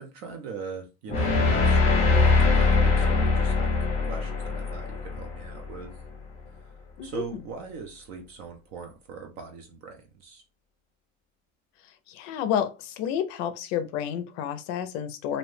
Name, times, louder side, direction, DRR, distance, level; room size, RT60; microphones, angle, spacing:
voice 1, 0.0-3.7 4.1-6.0 7.0-10.4, right 5 dB, 50° right, 0.5 m, -40 dB
sound 1, 1.1-6.2, left 4 dB, 20° left, 0.7 m, -22 dB
voice 2, 12.1-15.4, left 9 dB, 65° left, 0.5 m, -30 dB
2.6 x 2.0 x 3.1 m
cardioid pair, 175°, 34 cm